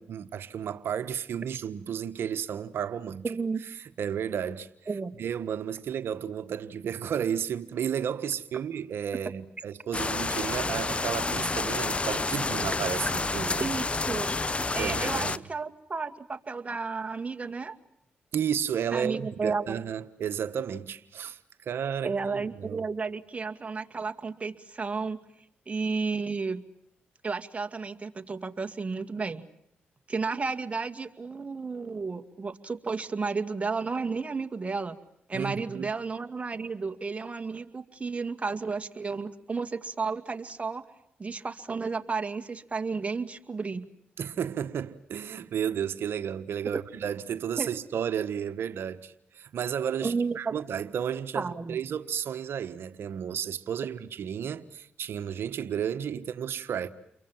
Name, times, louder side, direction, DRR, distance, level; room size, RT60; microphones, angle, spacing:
voice 1, 0.0-3.2 4.0-4.7 5.2-13.7 14.8-15.4 18.3-22.9 35.3-35.9 44.2-56.9, right 8 dB, 75° right, 1.4 m, -32 dB
voice 2, 3.2-3.6 4.9-5.1 13.6-14.3 14.7-17.7 18.9-19.8 22.0-25.2 25.7-26.6 27.2-29.4 30.1-35.0 35.3-40.8 41.2-43.9 47.6-47.7 50.0-50.5 51.3-51.8, right 4 dB, 30° right, 2.2 m, -32 dB
sound 1, 9.9-15.4, left 3 dB, 30° left, 1.0 m, -29 dB
29.5 x 23.5 x 7.4 m
cardioid pair, 60°, 4 cm